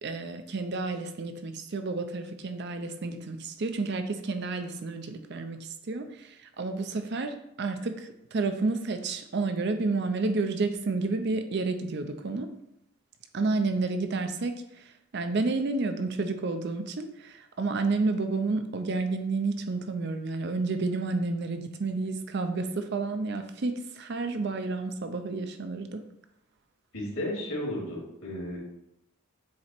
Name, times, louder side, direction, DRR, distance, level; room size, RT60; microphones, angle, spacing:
voice 1, 0.0-12.5 13.3-14.8 15.1-26.0, right 3 dB, 50° right, 8 dB, 0.5 m, -30 dB
voice 2, 26.9-28.6, left 1 dB, 70° left, -4 dB, 2.4 m, -33 dB
7.4 x 2.9 x 4.4 m, 0.82 s
head